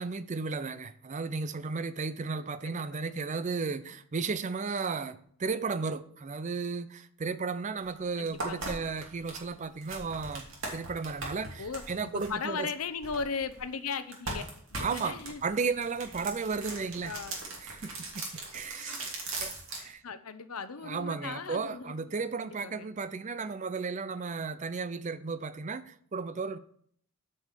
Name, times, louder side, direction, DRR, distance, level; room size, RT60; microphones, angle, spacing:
voice 1, 0.0-10.5 10.7-12.7 14.8-17.1 17.6-18.3 18.5-19.1 19.4-19.5 19.8-20.0 20.8-26.6, right 4 dB, 35° right, 0.5 m, -34 dB
sound 1, 7.8-7.9 8.3-13.6 14.1-19.9, right 2 dB, 60° right, 2.8 m, -39 dB
voice 2, 8.2-8.8 11.6-14.4 14.7-15.4 17.0-17.4 20.0-21.9 22.4-22.9, left 5 dB, 90° left, 0.8 m, -37 dB
9.3 x 5.5 x 6.6 m
head